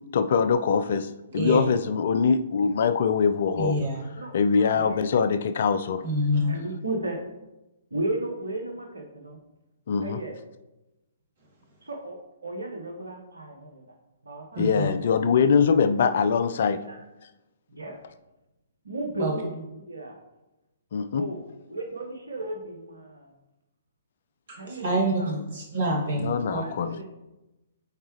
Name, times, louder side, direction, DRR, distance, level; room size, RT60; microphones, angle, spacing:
voice 1, 0.1-3.8 4.3-6.0 9.9-10.2 14.6-16.8 20.9-21.2 26.2-27.0, left 6 dB, 50° left, 12 dB, 0.4 m, -23 dB
voice 2, 3.5-4.0 6.0-6.5 14.5-14.9 19.2-19.3 24.5-26.6, right 1 dB, 55° right, -2 dB, 2.4 m, -27 dB
voice 3, 6.4-7.2 7.9-9.4 10.0-10.4 11.8-13.8 14.2-15.3 15.6-15.9 16.7-17.0 17.7-18.0 18.8-20.2 21.1-21.4 21.7-23.3 24.5-25.3 26.5-27.0, right 2 dB, 75° right, 3 dB, 1.2 m, -35 dB
8.3 x 4.5 x 3.2 m, 0.99 s
figure-of-eight pair, 120°, 0 cm